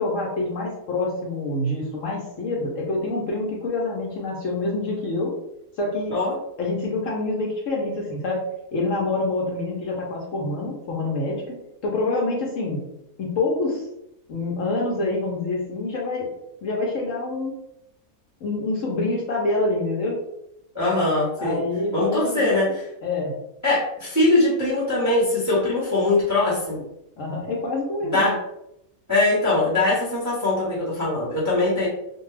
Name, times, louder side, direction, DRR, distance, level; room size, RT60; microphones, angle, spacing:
voice 1, 0.0-5.3 5.8-6.1 6.6-8.5 8.7-11.5 11.8-12.8 13.2-13.8 14.3-16.3 16.6-17.5 18.4-20.2 21.4-22.5 23.0-23.3 27.2-28.4, left 2 dB, 65° left, -2 dB, 0.9 m, -26 dB
voice 2, 20.7-21.6 21.9-22.9 23.6-26.8 28.1-28.3 29.1-31.9, left 2 dB, 15° right, -8 dB, 0.6 m, -21 dB
2.5 x 2.2 x 3.1 m, 0.82 s
omnidirectional pair, 1.6 m